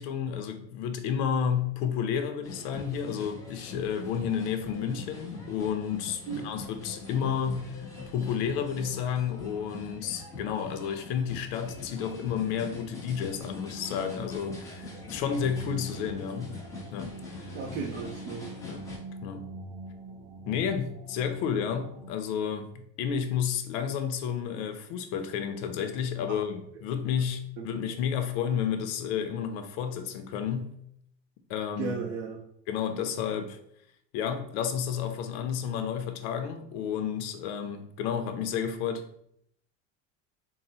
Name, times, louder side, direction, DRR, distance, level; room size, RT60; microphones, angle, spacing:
voice 1, 0.0-16.6 16.9-17.5 18.7-18.9 19.2-19.5 20.5-30.8 31.5-32.1 32.7-33.6 34.1-39.0, left 7 dB, 85° left, 7 dB, 0.6 m, -31 dB
sound 1, 2.4-19.0, left 3 dB, 10° left, 0.8 m, -43 dB
sound 2, 13.1-22.1, right 2 dB, 45° right, 0.4 m, -44 dB
voice 2, 17.5-18.5 26.3-26.4 27.6-27.7 31.8-32.4, right 5 dB, 85° right, 0 dB, 0.6 m, -35 dB
3.9 x 2.0 x 4.1 m, 0.72 s
cardioid pair, 165°, 33 cm